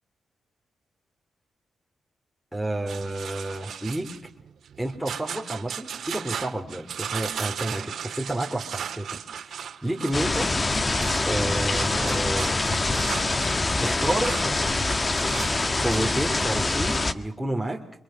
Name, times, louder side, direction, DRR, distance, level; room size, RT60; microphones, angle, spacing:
voice 1, 2.5-4.1 4.8-10.5 11.3-12.7 13.8-14.4 15.8-17.8, right 1 dB, ahead, 0 dB, 3.2 m, -30 dB
sound 1, 2.9-16.1, right 8 dB, 75° right, 1.9 m, -37 dB
sound 2, 10.1-17.1, left 2 dB, 30° left, 1.5 m, -25 dB
29.5 x 24.5 x 6.5 m, 0.64 s
cardioid pair, 95°, 0 cm